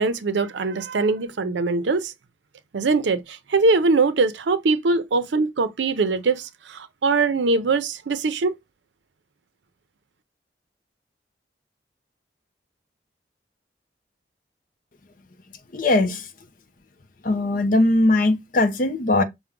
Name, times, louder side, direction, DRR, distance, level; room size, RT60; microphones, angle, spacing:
voice 1, 0.0-2.1 2.7-8.6, right 3 dB, 85° right, 0.5 m, -22 dB
voice 2, 15.7-16.2 17.2-19.2, left 2 dB, 50° left, 0.6 m, -20 dB
5.8 x 2.1 x 3.6 m
head